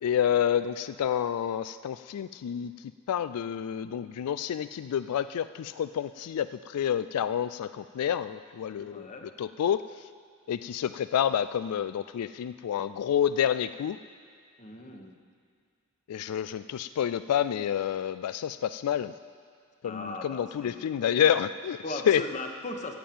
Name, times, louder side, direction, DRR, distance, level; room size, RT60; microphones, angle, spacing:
voice 1, 0.0-2.7 3.1-9.1 9.4-9.8 10.5-14.0 16.1-19.1 19.8-21.8 22.1-22.2, left 9 dB, 90° left, 13 dB, 0.3 m, -28 dB
voice 2, 8.8-9.3 14.6-15.2 19.8-20.8 21.8-23.0, left 2 dB, 35° left, 4 dB, 1.1 m, -38 dB
15.0 x 7.3 x 8.6 m, 2.1 s
head